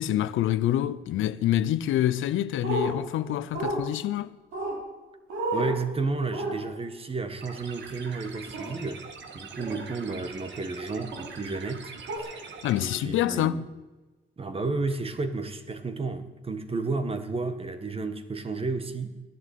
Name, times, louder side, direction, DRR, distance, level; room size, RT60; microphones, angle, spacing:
voice 1, 0.0-4.3 12.6-13.6, left 12 dB, 80° left, 0.7 m, -26 dB
sound 1, 2.6-2.9 3.5-3.8 4.5-4.8 5.3-5.7 6.3-6.5 8.5-8.7 9.6-9.8 11.1-11.3 12.1-12.2, right 1 dB, 85° right, 4.6 m, -30 dB
voice 2, 5.5-9.0 9.3-13.6 14.4-19.2, right 3 dB, 30° right, 1.6 m, -32 dB
sound 2, 7.4-13.0, right 5 dB, 65° right, 2.0 m, -43 dB
15.5 x 11.0 x 8.4 m
cardioid pair, 90°, 20 cm